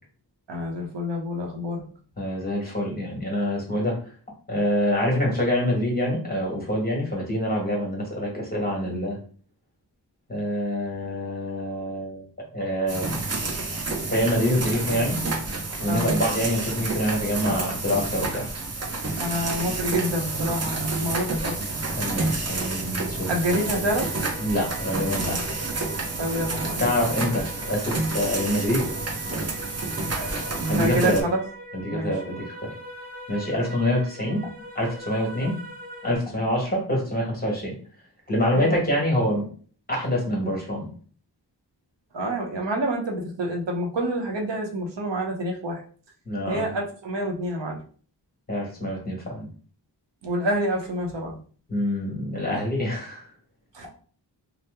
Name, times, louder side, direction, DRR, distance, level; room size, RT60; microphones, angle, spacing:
voice 1, 0.5-1.8 15.9-16.1 19.1-21.8 23.3-24.1 26.2-26.9 30.1-31.4 31.9-32.1 38.5-38.8 42.1-45.8 46.4-47.8 50.2-51.4 53.7-53.9, equal, 75° right, 1 dB, 0.8 m, -28 dB
voice 2, 2.2-4.0 4.5-9.2 10.3-13.3 14.1-15.2 15.8-18.5 21.9-23.3 24.4-25.5 26.8-28.9 30.7-31.2 31.7-32.7 33.3-34.5 34.7-35.6 36.0-37.7 38.3-39.5 39.9-40.9 46.2-46.7 48.5-49.5 51.7-53.3, equal, 20° left, -2 dB, 1.3 m, -26 dB
sound 1, 12.9-31.2, right 3 dB, 35° right, 0.6 m, -29 dB
sound 2, 23.5-36.2, right 1 dB, 20° right, 0.9 m, -41 dB
2.8 x 2.0 x 3.3 m, 0.43 s
wide cardioid pair, 65°, 43 cm